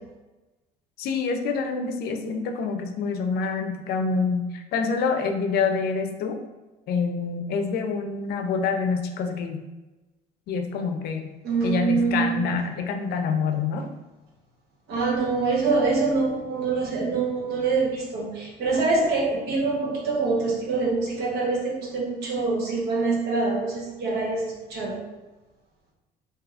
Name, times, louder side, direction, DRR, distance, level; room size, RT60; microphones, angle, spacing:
voice 1, 1.0-6.4 6.9-9.6 10.5-11.3 11.6-13.9, left 5 dB, 60° left, 5 dB, 0.5 m, -26 dB
voice 2, 11.4-12.4 14.9-25.0, right 3 dB, 70° right, -2 dB, 1.1 m, -25 dB
4.7 x 2.7 x 2.5 m, 1.1 s
cardioid pair, 115°, 18 cm